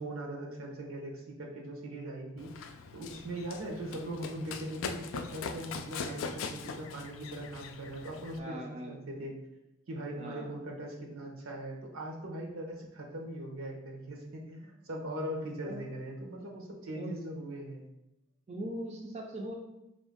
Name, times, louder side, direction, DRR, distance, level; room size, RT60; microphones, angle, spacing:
voice 1, 0.0-8.6 8.9-9.4 9.9-17.8, right 1 dB, 85° right, 0 dB, 0.9 m, -40 dB
Run, 2.4-8.4, left 5 dB, 70° left, 0.3 m, -41 dB
voice 2, 8.4-8.9 10.1-10.5 15.6-15.8 17.0-17.2 18.5-19.5, right 1 dB, 30° right, 0 dB, 0.4 m, -40 dB
4.4 x 2.6 x 3.5 m, 0.91 s
head